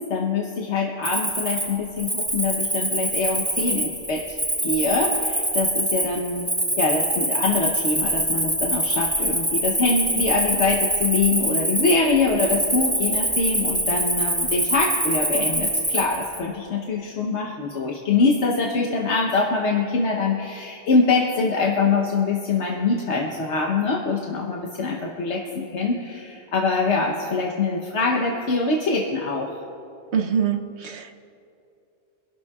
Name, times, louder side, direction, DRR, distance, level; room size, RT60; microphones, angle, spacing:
voice 1, 0.1-6.5 6.8-29.5, left 4 dB, 80° left, 0 dB, 1.3 m, -24 dB
Cricket, 1.0-16.4, right 1 dB, 15° right, 1.7 m, -24 dB
voice 2, 30.1-31.1, right 7 dB, 75° right, 6 dB, 1.1 m, -24 dB
25.0 x 12.0 x 2.4 m, 2.7 s
omnidirectional pair, 1.1 m